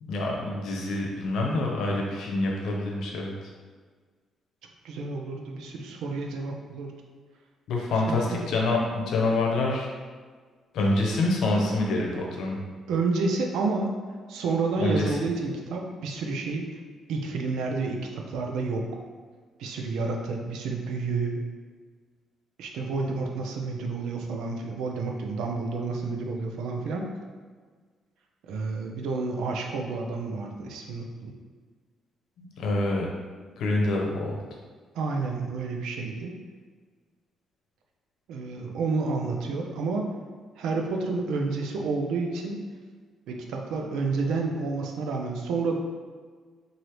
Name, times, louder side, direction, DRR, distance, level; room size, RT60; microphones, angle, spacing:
voice 1, 0.0-3.3 7.7-9.9 10.7-12.6 14.8-15.1 32.6-33.1 33.6-34.4, left 2 dB, 75° left, -1 dB, 0.8 m, -26 dB
voice 2, 4.8-6.9 8.1-8.4 12.9-13.9 14.3-16.8 17.1-18.9 19.6-21.4 22.6-27.1 28.4-31.3 34.9-36.3 38.3-40.1 40.6-42.6 43.3-45.8, right 3 dB, 90° right, 1 dB, 0.6 m, -30 dB
4.7 x 2.7 x 3.0 m, 1.5 s
cardioid pair, 145°, 0 cm